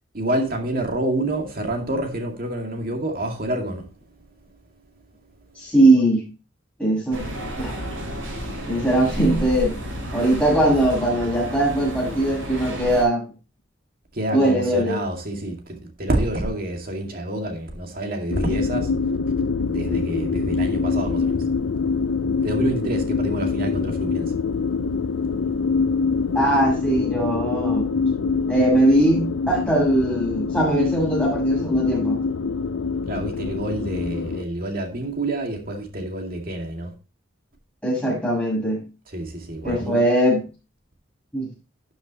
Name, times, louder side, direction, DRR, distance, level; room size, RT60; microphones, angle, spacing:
voice 1, 0.1-3.9 14.1-19.0 19.7-21.5 22.4-24.4 33.1-36.9 39.1-40.0, right 1 dB, 45° right, 2.2 m, -28 dB
voice 2, 5.6-6.3 6.8-7.3 7.6-7.8 8.7-9.8 10.1-13.2 14.3-15.0 26.3-27.9 28.5-32.2 37.8-38.8 39.6-40.4 41.3-41.5, right 1 dB, 5° left, 6.3 m, -20 dB
sound 1, 7.1-13.0, equal, 85° right, 5.4 m, -31 dB
sound 2, 18.3-34.4, left 4 dB, 80° left, 0.5 m, -24 dB
12.5 x 7.2 x 3.0 m
head